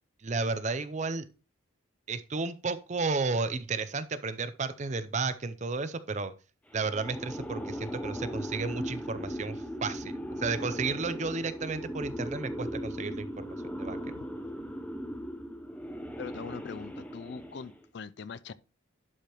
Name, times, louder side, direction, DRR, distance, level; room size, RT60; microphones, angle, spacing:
voice 1, 0.2-1.2 2.1-6.3 6.7-14.0, right 4 dB, 35° right, 0.5 m, -33 dB
sound 1, 6.7-17.9, equal, 5° left, 0.6 m, -38 dB
voice 2, 16.2-18.5, left 5 dB, 55° left, 0.4 m, -42 dB
11.5 x 4.9 x 3.0 m
head